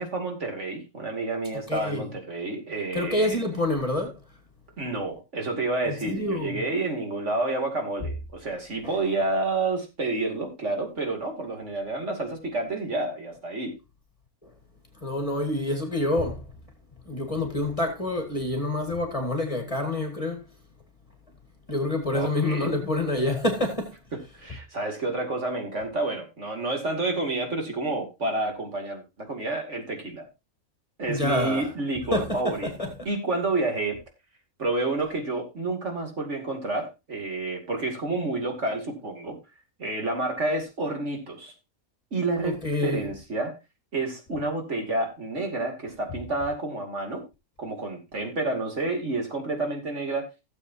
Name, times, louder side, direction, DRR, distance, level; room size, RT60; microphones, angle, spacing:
voice 1, 0.0-3.4 4.8-13.7 22.1-22.7 24.1-30.3 31.0-34.0 34.6-39.4 39.8-41.5 42.1-42.6 42.8-43.5 43.9-47.2 47.6-50.3, right 2 dB, 55° right, 2.8 m, -29 dB
voice 2, 1.7-2.1 2.9-4.1 6.1-6.6 8.8-9.0 15.0-16.4 17.1-20.5 21.7-24.0 31.1-31.7 32.1-32.5 32.8-32.9 42.4-43.1, left 1 dB, 25° left, 1.9 m, -27 dB
16.5 x 7.5 x 2.7 m
omnidirectional pair, 1.5 m